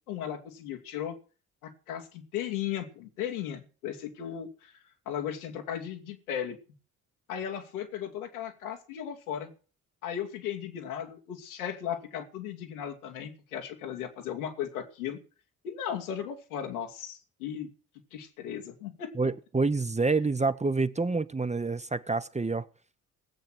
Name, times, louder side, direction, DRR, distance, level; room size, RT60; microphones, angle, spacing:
voice 1, 0.1-1.2 1.6-4.8 5.1-6.6 7.3-9.5 10.0-15.2 15.6-17.7 18.1-19.1, left 9 dB, 85° left, 2.6 m, -36 dB
voice 2, 19.1-22.7, right 3 dB, 15° right, 1.0 m, -27 dB
19.0 x 8.7 x 6.3 m
hypercardioid pair, 45°, 43 cm